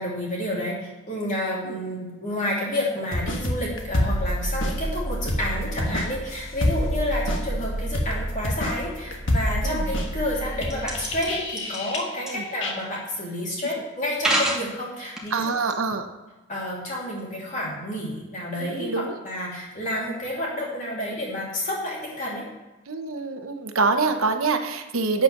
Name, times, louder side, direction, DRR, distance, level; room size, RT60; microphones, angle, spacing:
voice 1, 0.0-15.4 16.5-22.5, left 1 dB, 35° left, -4 dB, 3.1 m, -30 dB
sound 1, 3.1-12.3 12.6-12.7, equal, 65° left, 1.3 m, -27 dB
sound 2, 10.7-11.3 11.6-12.0 12.3-12.4 13.1-13.2 14.1-14.6 15.2-15.7, right 1 dB, 5° right, 1.3 m, -25 dB
voice 2, 15.3-16.1 18.6-19.2 22.9-25.2, right 4 dB, 80° right, 6 dB, 1.0 m, -25 dB
8.6 x 7.9 x 5.9 m, 1.1 s
head